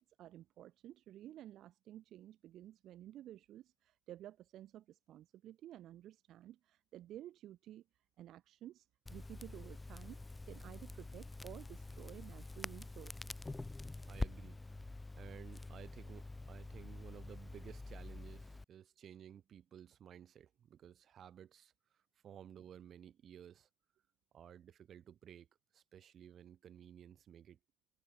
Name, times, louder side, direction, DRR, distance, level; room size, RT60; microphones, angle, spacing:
voice 1, 0.0-7.8 8.2-13.3, right 12 dB, 80° right, 0.7 m, -53 dB
Crackle, 9.1-18.6, left 2 dB, 20° left, 0.6 m, -46 dB
voice 2, 14.1-14.6 15.1-21.7 22.2-23.7 24.3-25.5 25.7-27.6, right 9 dB, 65° right, 1.3 m, -55 dB
cardioid pair, 90°, 0 cm